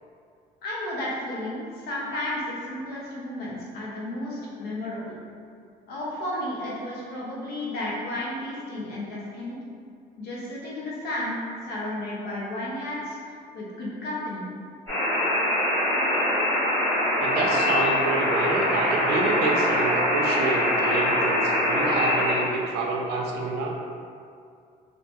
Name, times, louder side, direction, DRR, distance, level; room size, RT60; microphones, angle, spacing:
voice 1, 0.6-5.1 5.9-9.6 10.2-13.2 13.5-14.4, left 1 dB, 75° left, -5 dB, 0.7 m, -33 dB
sound 1, 14.9-22.3, left 1 dB, 15° left, 1.0 m, -23 dB
voice 2, 17.2-23.7, right 3 dB, 85° right, -1 dB, 0.5 m, -28 dB
2.6 x 2.1 x 2.9 m, 2.4 s
cardioid pair, 110°, 17 cm